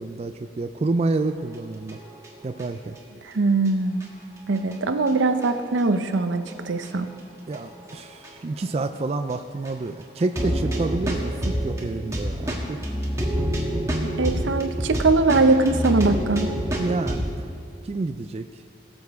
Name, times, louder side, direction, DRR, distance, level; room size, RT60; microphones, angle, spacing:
voice 1, 0.0-2.0 2.4-3.0 7.5-12.8 16.8-17.5 17.8-18.5, right 3 dB, 35° right, 8 dB, 0.3 m, -28 dB
sound 1, 1.9-2.6 3.0-3.1 3.7-3.8 4.0-4.1 4.6-5.5 6.1-6.5 6.8-6.9 7.5-8.0 8.2-8.3 8.6-8.7 9.3-9.4 9.6-9.7 10.2-17.3, equal, 15° right, 1.3 m, -27 dB
voice 2, 3.2-4.0 4.5-7.1 14.0-16.5, right 3 dB, 85° right, 9 dB, 0.6 m, -21 dB
18.0 x 7.1 x 3.5 m, 2.4 s
head